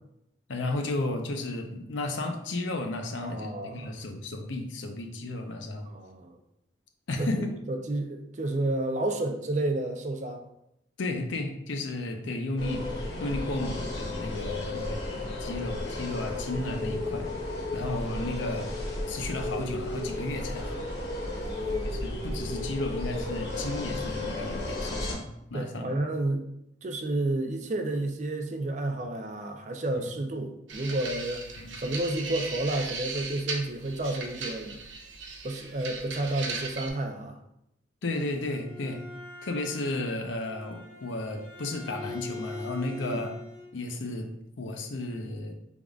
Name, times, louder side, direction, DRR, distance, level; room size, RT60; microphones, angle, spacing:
voice 1, 0.5-5.9 7.1-7.5 11.0-17.3 17.7-18.7 19.1-20.9 21.8-26.0 29.9-30.1 31.6-31.7 38.0-39.0 39.4-43.3 43.7-45.5, left 2 dB, 80° left, 4 dB, 0.6 m, -33 dB
voice 2, 3.2-3.9 5.9-6.4 7.2-10.4 17.8-17.9 21.4-22.0 25.5-26.4 26.8-31.4 31.8-34.8 35.4-37.4 43.0-43.2, right 2 dB, 40° right, 4 dB, 0.4 m, -31 dB
sound 1, 12.6-25.1, left 2 dB, 60° left, 1.2 m, -33 dB
sound 2, 30.7-36.9, right 4 dB, 85° right, 0.7 m, -37 dB
Bowed string instrument, 38.4-43.8, left 2 dB, 20° right, 1.1 m, -43 dB
5.0 x 3.5 x 2.4 m, 0.80 s
head